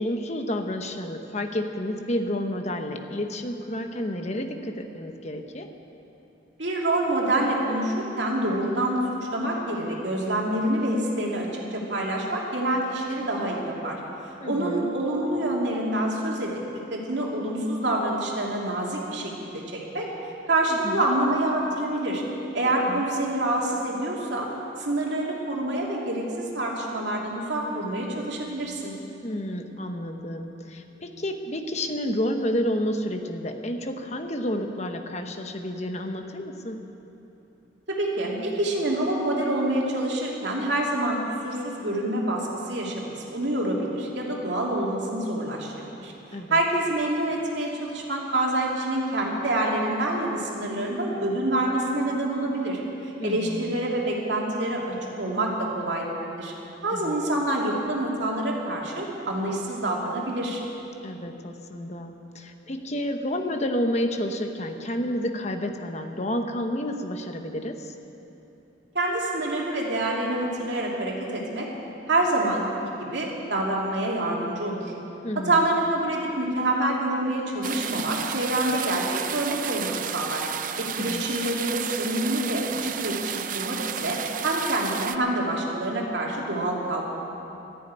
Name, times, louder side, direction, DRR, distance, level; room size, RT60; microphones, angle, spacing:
voice 1, 0.0-5.7 14.4-14.9 20.7-21.0 22.6-23.0 29.2-36.8 46.3-46.6 53.2-53.7 56.9-57.1 61.0-67.9 75.2-75.6 81.0-81.2, left 1 dB, 35° left, 6 dB, 1.0 m, -30 dB
voice 2, 6.6-9.0 9.3-14.0 14.4-20.1 20.5-22.2 22.5-24.5 24.8-28.9 37.9-45.7 46.0-46.1 46.5-56.5 56.8-60.6 68.9-71.7 72.1-74.9 75.4-80.4 80.8-87.0, right 1 dB, 70° right, -2 dB, 2.8 m, -27 dB
sound 1, 77.6-85.2, right 8 dB, 45° right, 0.5 m, -32 dB
13.5 x 11.0 x 9.5 m, 3.0 s
head